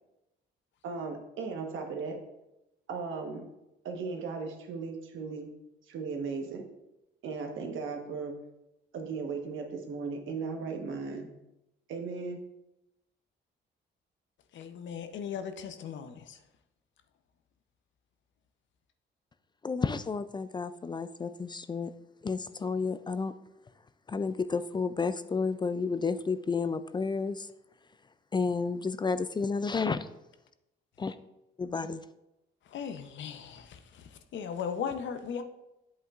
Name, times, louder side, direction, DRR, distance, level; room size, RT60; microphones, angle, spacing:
voice 1, 0.8-2.2 2.9-3.4 3.8-5.5 5.9-6.6 7.2-8.4 8.9-11.3 11.9-12.4, right 4 dB, 80° right, 3 dB, 1.2 m, -36 dB
voice 2, 14.5-16.4 32.7-35.4, left 7 dB, 70° left, 9 dB, 0.7 m, -38 dB
voice 3, 19.6-21.9 22.2-23.3 24.1-27.5 28.3-30.1 31.0-31.1 31.6-32.0, left 4 dB, 25° left, 13 dB, 0.3 m, -31 dB
8.0 x 7.7 x 2.4 m, 0.91 s
cardioid pair, 90°, 20 cm